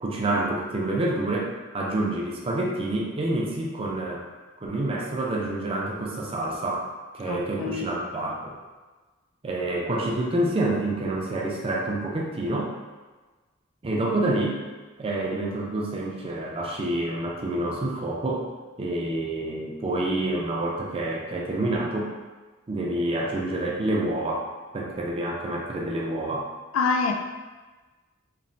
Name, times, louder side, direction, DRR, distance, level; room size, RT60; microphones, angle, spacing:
voice 1, 0.0-4.2 4.6-6.9 7.1-8.5 9.4-12.7 13.8-14.6 15.0-18.5 18.8-22.1 22.7-24.5 24.7-26.5, right 1 dB, 30° right, -2 dB, 0.4 m, -28 dB
voice 2, 7.3-7.9 26.7-27.1, left 4 dB, 90° left, 3 dB, 0.3 m, -25 dB
3.0 x 2.1 x 2.6 m, 1.3 s
head